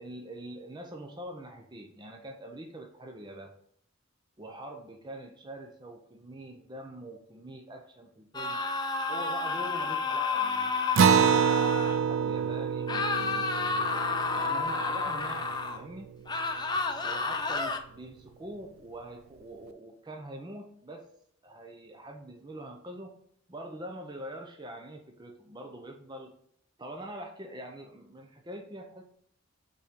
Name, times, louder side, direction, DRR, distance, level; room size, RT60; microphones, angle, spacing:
voice 1, 0.0-3.5 4.4-8.6 9.1-14.0 14.3-16.1 17.0-21.1 21.4-23.2 23.5-26.4 26.8-29.0, right 1 dB, 20° right, 2 dB, 0.7 m, -44 dB
sound 1, 8.3-12.0 12.9-15.8 16.3-17.8, left 4 dB, 20° left, 0.6 m, -30 dB
Acoustic guitar, 11.0-15.8, right 7 dB, 85° right, 0.4 m, -27 dB
5.9 x 4.3 x 5.1 m, 0.68 s
head